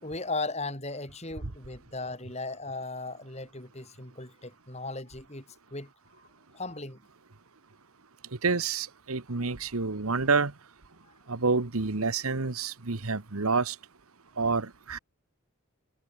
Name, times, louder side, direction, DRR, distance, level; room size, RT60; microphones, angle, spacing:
voice 1, 0.0-5.4 5.7-5.9 6.5-7.0, left 3 dB, 30° left, 6.4 m, -37 dB
voice 2, 8.4-10.5 11.3-13.7 14.4-15.0, right 4 dB, 85° right, 1.4 m, -28 dB
head